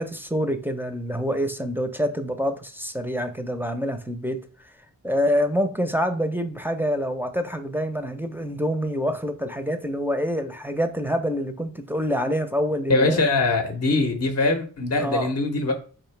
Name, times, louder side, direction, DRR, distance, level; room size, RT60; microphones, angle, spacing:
voice 1, 0.0-4.4 5.0-13.2 15.0-15.3, equal, 5° right, 0.5 m, -26 dB
voice 2, 12.9-15.7, left 2 dB, 45° left, 0.6 m, -22 dB
3.7 x 2.7 x 3.2 m
cardioid pair, 45°, 36 cm